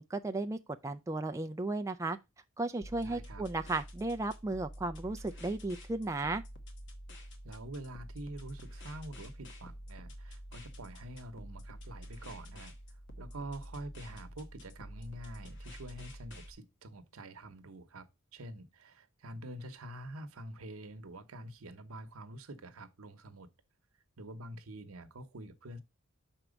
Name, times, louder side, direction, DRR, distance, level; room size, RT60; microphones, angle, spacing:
voice 1, 0.0-2.2 2.6-6.4, right 2 dB, 15° right, 0.3 m, -35 dB
sound 1, 2.8-16.5, equal, 55° left, 1.1 m, -48 dB
voice 2, 3.0-3.4 7.1-18.1 18.3-23.5 24.2-25.8, right 1 dB, 80° right, 0.9 m, -46 dB
5.9 x 4.5 x 5.1 m
head